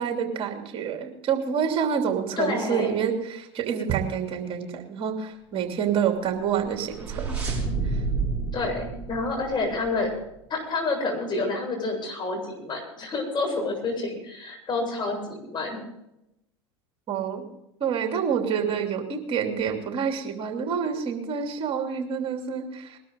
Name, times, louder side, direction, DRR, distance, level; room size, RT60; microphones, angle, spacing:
voice 1, 0.0-7.6 7.8-8.0 17.1-17.4 17.8-23.0, right 7 dB, 40° right, 3 dB, 3.1 m, -28 dB
voice 2, 2.4-3.0 8.5-10.1 10.5-15.8, left 3 dB, 30° left, 1 dB, 7.6 m, -28 dB
sound 1, 6.5-10.1, right 4 dB, 10° right, 7.2 m, -30 dB
21.5 x 12.5 x 3.9 m, 0.84 s
hypercardioid pair, 85°, 15 cm